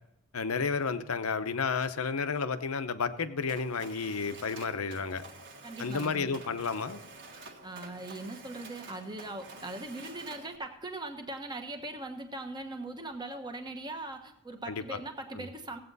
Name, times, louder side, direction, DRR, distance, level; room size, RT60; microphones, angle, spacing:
voice 1, 0.3-5.2 5.8-7.0 14.7-15.0 15.4-15.5, left 5 dB, 85° left, 11 dB, 0.8 m, -32 dB
Mechanisms, 3.5-10.6, right 3 dB, 55° right, 1.6 m, -49 dB
voice 2, 5.6-6.4 7.6-15.8, right 2 dB, 20° right, 6 dB, 1.2 m, -40 dB
16.5 x 8.4 x 4.1 m, 0.80 s
head